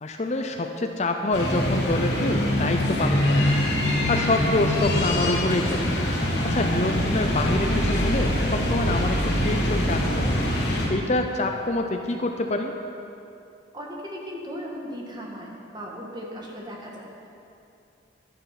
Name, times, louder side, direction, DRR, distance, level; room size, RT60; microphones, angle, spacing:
voice 1, 0.0-3.6 4.1-5.9 6.4-10.4 10.9-12.7, left 2 dB, 35° left, 4 dB, 0.6 m, -26 dB
sound 1, 1.3-10.9, left 1 dB, 65° left, 3.2 m, -24 dB
voice 2, 13.7-17.3, equal, 20° right, -2 dB, 1.7 m, -37 dB
11.5 x 10.0 x 5.9 m, 2.7 s
head